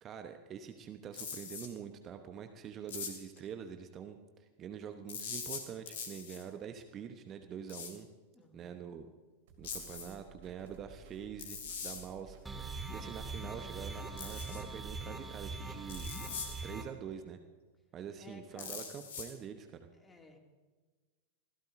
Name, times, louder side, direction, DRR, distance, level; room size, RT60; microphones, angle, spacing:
voice 1, 0.0-8.1 8.5-9.1 9.6-11.6 11.8-12.4 12.7-16.1 16.6-17.4 17.9-19.9, right 8 dB, 30° right, 7 dB, 1.0 m, -45 dB
sound 1, 1.1-1.7 2.9-3.4 5.1-6.4 7.7-7.9 9.6-10.1 11.4-12.0 14.2-14.6 15.9-16.5 18.6-19.3, left 6 dB, 60° left, 2.5 m, -42 dB
voice 2, 8.3-8.8 18.2-18.7 19.9-20.4, left 2 dB, 15° left, 3 dB, 2.5 m, -56 dB
sound 2, 9.5-14.6, right 7 dB, 55° right, 2.9 m, -56 dB
sound 3, 12.5-16.8, right 3 dB, 10° right, 2.2 m, -42 dB
26.0 x 17.0 x 2.7 m, 1.4 s
figure-of-eight pair, 90°, 0 cm